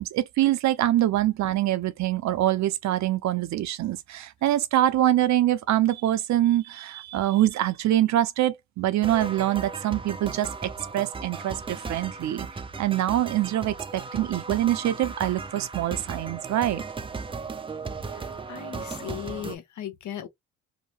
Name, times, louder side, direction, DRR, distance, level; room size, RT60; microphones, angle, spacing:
voice 1, 0.0-12.5 12.8-16.8, right 13 dB, 70° right, 0.6 m, -24 dB
sound 1, 9.0-19.6, right 4 dB, 20° right, 0.4 m, -36 dB
voice 2, 18.1-20.3, left 11 dB, 70° left, 0.8 m, -37 dB
2.8 x 2.1 x 3.0 m
cardioid pair, 90°, 30 cm